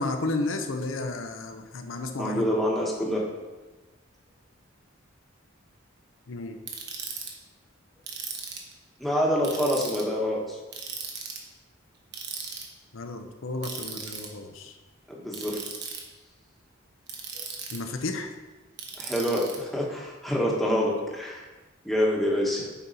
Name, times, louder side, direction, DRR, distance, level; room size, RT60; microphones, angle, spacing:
voice 1, 0.0-2.4 6.3-6.6 12.9-14.8 17.7-18.3, left 2 dB, 75° left, 5 dB, 0.7 m, -32 dB
voice 2, 2.2-3.2 9.0-10.6 15.1-15.6 17.3-17.4 19.0-21.4 21.8-22.7, equal, ahead, -4 dB, 1.2 m, -26 dB
Ratchet pawl, 6.7-7.3 8.1-8.7 9.4-10.0 10.7-11.4 12.1-12.6 13.6-14.3 15.3-16.0 17.1-17.9 18.8-19.6, right 6 dB, 55° right, 1.1 m, -37 dB
8.2 x 5.4 x 4.1 m, 1.2 s
head